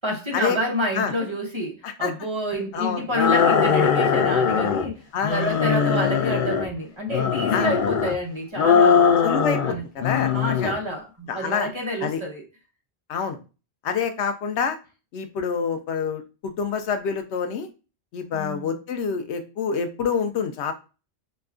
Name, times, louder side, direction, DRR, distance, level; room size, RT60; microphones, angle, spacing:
voice 1, 0.0-5.0 5.3-9.1 9.6-9.8 10.3-12.4 18.3-18.7, equal, 30° right, 0.8 m, -28 dB
sound 1, 3.1-4.9 5.2-6.7 7.1-8.2 8.6-9.7 10.0-10.8, left 6 dB, 60° left, 0.6 m, -20 dB
voice 2, 9.2-10.7 11.3-11.7 12.0-12.2 13.1-13.4 13.8-14.8 15.1-17.7 18.1-20.7, left 6 dB, 85° left, 0.9 m, -27 dB
5.0 x 2.2 x 2.4 m
omnidirectional pair, 1.1 m